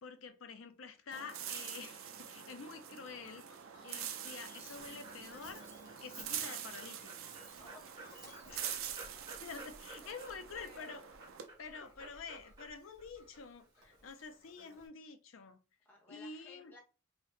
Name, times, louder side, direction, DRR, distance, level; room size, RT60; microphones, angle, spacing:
voice 1, 0.0-3.5 3.8-5.6 6.0-7.3 8.5-8.9 9.4-11.1 11.6-15.6 16.1-16.7, left 5 dB, 70° left, 0.5 m, -48 dB
sound 1, 1.1-11.5, right 9 dB, 75° right, 0.5 m, -45 dB
sound 2, 3.3-8.5, left 4 dB, 40° left, 0.9 m, -63 dB
Dog, 4.1-14.9, right 2 dB, 20° right, 1.3 m, -55 dB
voice 2, 7.6-8.2 10.0-10.9 13.8-14.1 15.8-16.8, left 1 dB, 10° left, 0.8 m, -59 dB
2.8 x 2.7 x 3.2 m
head